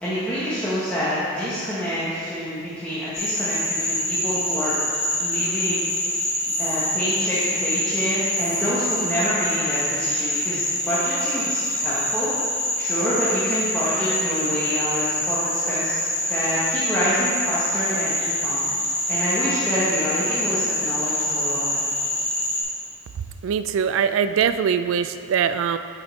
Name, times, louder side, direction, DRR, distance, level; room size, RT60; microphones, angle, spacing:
voice 1, 0.0-4.8 5.2-6.3 6.6-12.3 12.8-18.6 19.1-21.9, equal, 5° left, -12 dB, 1.1 m, -27 dB
Frog, 3.1-22.6, left 1 dB, 75° left, 1.7 m, -25 dB
voice 2, 23.4-25.8, right 7 dB, 85° right, 11 dB, 0.3 m, -22 dB
7.2 x 5.1 x 4.0 m, 2.4 s
head